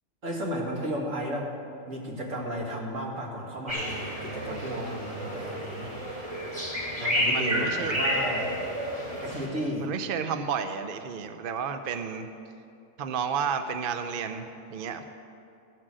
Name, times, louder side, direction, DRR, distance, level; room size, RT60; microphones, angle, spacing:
voice 1, 0.2-1.5 1.9-5.9 7.0-8.5 9.2-9.9, equal, 75° right, -2 dB, 2.3 m, -33 dB
sound 1, 3.7-9.5, equal, 25° right, 3.1 m, -30 dB
voice 2, 7.2-8.0 9.8-12.3 13.0-15.0, right 6 dB, 55° right, 8 dB, 0.7 m, -32 dB
15.5 x 6.3 x 7.5 m, 2.6 s
omnidirectional pair, 1.4 m